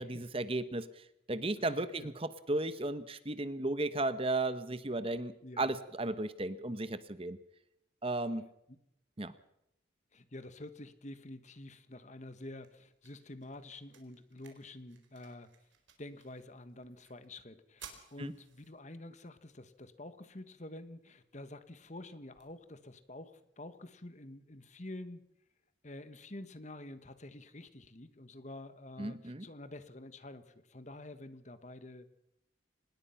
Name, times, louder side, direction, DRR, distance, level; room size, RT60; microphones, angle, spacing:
voice 1, 0.0-7.4 8.0-8.5 9.2-9.3 18.2-18.3 29.0-29.5, right 2 dB, 30° right, 13 dB, 1.0 m, -35 dB
voice 2, 1.6-2.1 5.4-5.7 8.7-8.8 10.1-15.5 16.0-25.3 25.8-32.1, left 1 dB, 35° left, 11 dB, 1.5 m, -48 dB
sound 1, 12.0-24.0, right 7 dB, 75° right, 4.2 m, -61 dB
25.5 x 20.5 x 5.8 m, 0.80 s
head